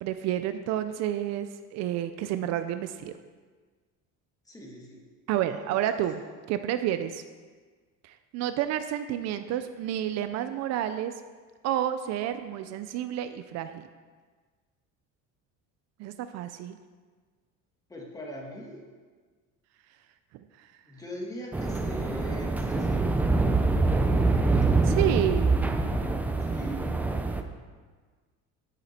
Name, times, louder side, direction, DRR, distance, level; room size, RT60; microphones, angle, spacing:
voice 1, 0.0-3.1 5.3-6.2 6.5-7.2 8.0-11.1 11.6-13.8 16.0-16.8 20.6-20.7 24.8-25.6, right 11 dB, 60° right, 10 dB, 0.5 m, -30 dB
voice 2, 4.5-5.1 5.5-5.8 17.9-18.8 20.9-23.2 26.4-26.9, equal, 10° left, -2 dB, 1.6 m, -40 dB
sound 1, 21.5-27.4, right 3 dB, 5° right, 0.3 m, -25 dB
10.0 x 9.2 x 4.3 m, 1.5 s
cardioid pair, 170°, 30 cm